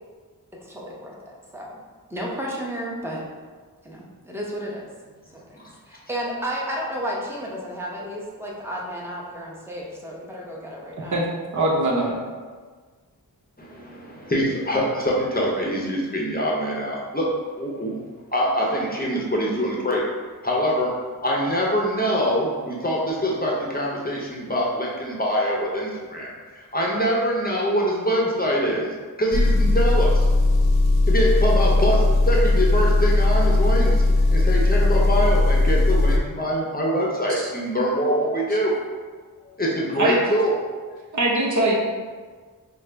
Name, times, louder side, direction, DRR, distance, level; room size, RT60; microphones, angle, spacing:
voice 1, 0.5-1.8 2.1-3.2 3.8-4.8 5.3-11.2, equal, 5° right, -3 dB, 0.8 m, -32 dB
voice 2, 11.5-12.2 40.0-40.2 41.1-41.7, right 2 dB, 55° right, -4 dB, 0.9 m, -21 dB
voice 3, 13.6-20.1 20.4-20.9 21.2-28.9 29.2-30.3 31.1-38.8 39.6-40.6, equal, 25° left, -4 dB, 0.7 m, -24 dB
Engine, 29.3-36.2, left 2 dB, 85° left, 0.6 m, -18 dB
4.9 x 2.0 x 3.3 m, 1.5 s
wide cardioid pair, 70°, 36 cm